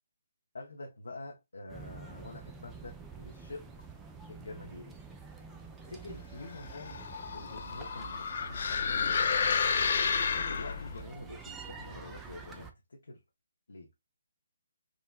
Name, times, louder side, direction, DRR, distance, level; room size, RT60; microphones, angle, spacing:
voice 1, 0.5-3.7 4.3-5.0 5.9-7.0 7.3-10.1 10.4-13.2 13.7-13.9, left 2 dB, 80° left, 0.7 m, -46 dB
sound 1, 1.7-12.7, right 5 dB, 10° right, 0.4 m, -48 dB
sound 2, 6.5-11.0, left 6 dB, 55° left, 0.4 m, -31 dB
3.7 x 2.0 x 2.3 m
hypercardioid pair, 155°, 0 cm